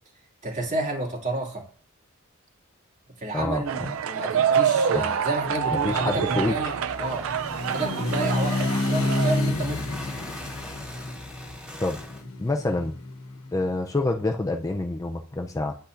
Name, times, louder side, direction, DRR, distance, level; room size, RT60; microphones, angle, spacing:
voice 1, 0.4-1.6 3.2-7.3 7.7-10.0, right 2 dB, 35° right, 0 dB, 2.3 m, -31 dB
voice 2, 3.3-3.9 4.9-5.1 5.8-6.6 11.8-12.0 12.4-13.0 13.5-15.8, left 2 dB, 15° left, 4 dB, 0.4 m, -27 dB
sound 1, 3.7-9.4, right 7 dB, 70° right, 0.4 m, -26 dB
sound 2, 5.6-13.6, left 2 dB, 80° left, 1.1 m, -30 dB
sound 3, 7.0-12.2, left 1 dB, 5° right, 2.2 m, -42 dB
10.0 x 8.1 x 2.5 m, 0.44 s
head